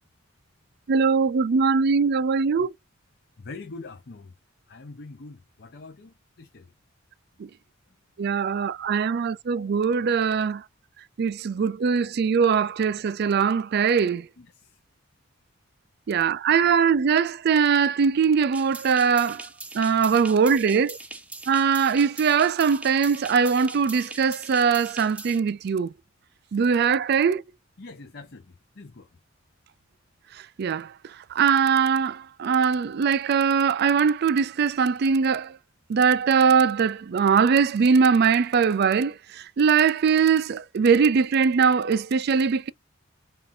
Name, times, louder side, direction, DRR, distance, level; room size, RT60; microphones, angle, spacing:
voice 1, 0.9-2.7 7.4-7.5 8.2-10.6 11.2-14.3 16.1-19.5 19.7-21.0 21.5-25.9 26.5-27.4 30.6-30.9 31.3-35.5 35.9-42.7, right 6 dB, 50° right, 0.3 m, -21 dB
voice 2, 3.4-4.3 4.7-6.7 14.4-14.8 27.8-29.2, left 3 dB, 55° left, 0.7 m, -44 dB
sound 1, 18.5-25.4, right 2 dB, 5° right, 0.6 m, -41 dB
5.4 x 2.5 x 2.6 m
head